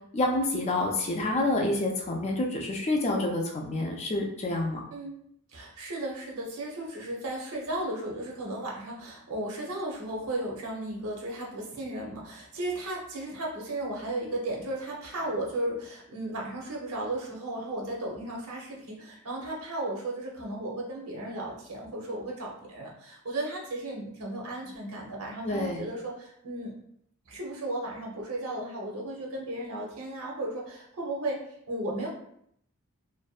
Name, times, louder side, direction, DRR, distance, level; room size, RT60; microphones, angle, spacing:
voice 1, 0.1-4.9 25.4-25.8, left 2 dB, 30° left, 1 dB, 0.3 m, -28 dB
voice 2, 5.5-26.7 27.3-31.4 31.7-32.1, right 1 dB, 80° right, -1 dB, 0.7 m, -35 dB
2.5 x 2.1 x 2.3 m, 0.70 s
head